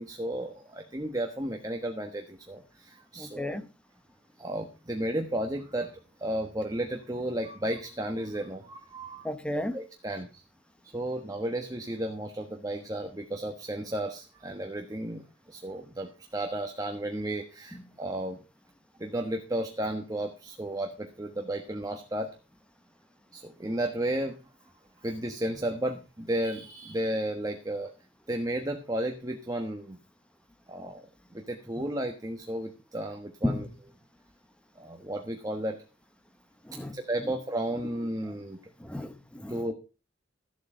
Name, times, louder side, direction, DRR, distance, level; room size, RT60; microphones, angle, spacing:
voice 1, 0.0-3.6 4.4-5.9 6.2-9.3 9.7-10.4 10.9-18.4 19.0-22.3 23.3-24.4 25.0-27.9 28.3-30.0 30.7-31.0 31.3-33.7 34.8-35.8 36.9-38.6 39.5-39.7, right 1 dB, 20° right, 1.3 m, -33 dB
voice 2, 3.2-3.7 9.2-9.8 17.7-17.8 33.4-33.7 36.6-37.3 38.8-39.6, left 1 dB, 5° left, 1.1 m, -33 dB
14.0 x 8.0 x 5.0 m
head